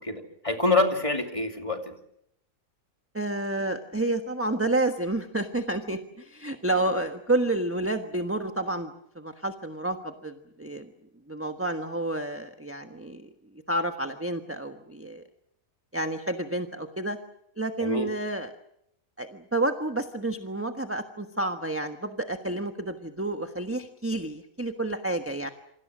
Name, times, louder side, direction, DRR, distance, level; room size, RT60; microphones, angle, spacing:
voice 1, 0.0-1.8 17.8-18.1, left 2 dB, 25° left, 4 dB, 2.8 m, -26 dB
voice 2, 3.1-10.9 11.3-13.3 13.7-15.2 15.9-17.2 17.6-18.5 19.2-25.5, right 2 dB, 10° right, 5 dB, 1.2 m, -30 dB
28.0 x 24.5 x 6.2 m, 0.75 s
omnidirectional pair, 1.4 m